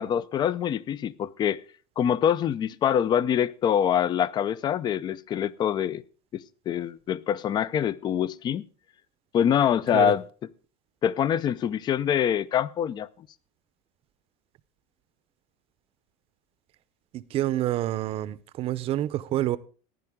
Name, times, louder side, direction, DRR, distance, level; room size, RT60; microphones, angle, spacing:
voice 1, 0.0-1.6 2.0-6.0 6.3-8.6 9.3-10.2 11.0-13.1, left 9 dB, 30° left, 0.5 m, -25 dB
voice 2, 17.1-19.6, right 13 dB, 40° right, 0.7 m, -28 dB
15.0 x 11.0 x 3.7 m
supercardioid pair, 145°, 16 cm